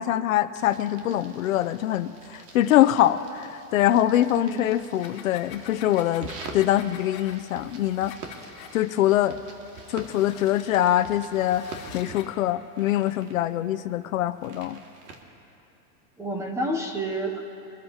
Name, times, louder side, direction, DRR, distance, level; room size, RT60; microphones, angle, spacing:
voice 1, 0.0-8.1 8.7-9.4 9.9-11.7 11.9-14.8, left 12 dB, 55° left, 12 dB, 0.7 m, -23 dB
sound 1, 0.5-15.2, right 4 dB, 80° right, 2.3 m, -46 dB
sound 2, 4.8-8.8 9.7-12.4, left 8 dB, 30° left, 1.0 m, -46 dB
voice 2, 16.2-17.4, right 1 dB, 5° right, 2 dB, 0.6 m, -29 dB
24.5 x 13.5 x 2.9 m, 2.8 s
hypercardioid pair, 145°, 47 cm